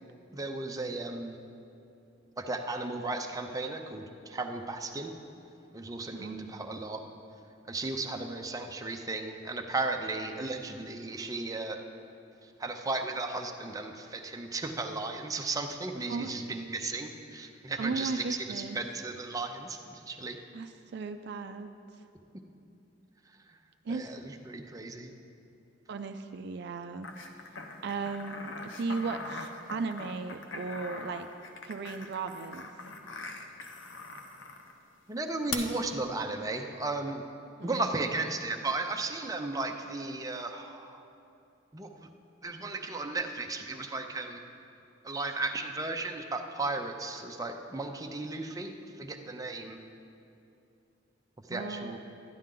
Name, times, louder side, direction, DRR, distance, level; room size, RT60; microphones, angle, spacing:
voice 1, 0.3-1.3 2.4-5.1 5.7-7.0 7.7-11.8 12.6-20.4 23.9-25.1 35.1-37.2 37.6-41.0 41.7-42.1 42.4-44.4 45.0-48.7 49.0-49.8 51.5-52.0, right 3 dB, 20° right, 4 dB, 0.6 m, -35 dB
voice 2, 6.1-6.7 16.1-16.4 17.8-18.8 20.5-21.7 23.9-24.1 25.9-27.1 27.8-31.3 31.7-32.7 37.6-37.9 51.5-52.0, right 4 dB, 60° right, 7 dB, 0.4 m, -36 dB
sound 1, 27.0-34.7 35.5-35.6, left 4 dB, 85° left, 0.8 m, -42 dB
12.0 x 10.5 x 3.8 m, 2.7 s
head